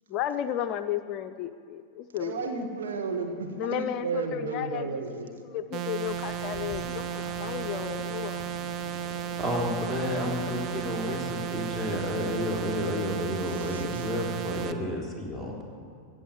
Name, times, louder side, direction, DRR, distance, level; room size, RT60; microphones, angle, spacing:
voice 1, 0.1-2.6 3.6-8.5, left 10 dB, 40° left, 10 dB, 0.5 m, -34 dB
voice 2, 2.2-5.3 13.7-13.8, right 4 dB, 65° right, 4 dB, 1.6 m, -32 dB
sound 1, 5.7-14.7, right 9 dB, 35° right, 0.8 m, -34 dB
sound 2, 6.0-12.7, left 3 dB, 15° left, 3.0 m, -46 dB
voice 3, 9.4-15.6, left 1 dB, 10° right, -2 dB, 3.6 m, -31 dB
15.5 x 8.5 x 9.6 m, 2.3 s
figure-of-eight pair, 90°, 0 cm